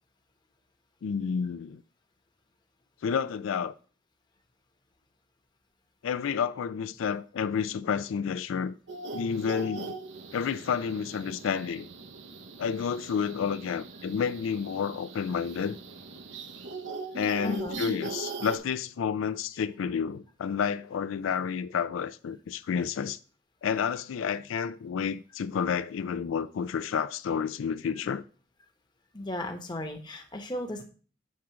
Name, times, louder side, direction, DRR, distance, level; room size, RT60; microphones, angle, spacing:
voice 1, 1.0-1.8 3.0-3.7 6.0-8.7 9.1-10.0 10.3-11.9 12.6-15.8 17.1-23.2 23.6-28.2, left 7 dB, 85° left, 0.4 m, -30 dB
sound 1, 8.9-18.6, right 3 dB, 70° right, 0.7 m, -40 dB
voice 2, 17.4-17.8 29.1-30.8, left 1 dB, 20° left, 0.9 m, -35 dB
7.5 x 3.7 x 5.8 m
head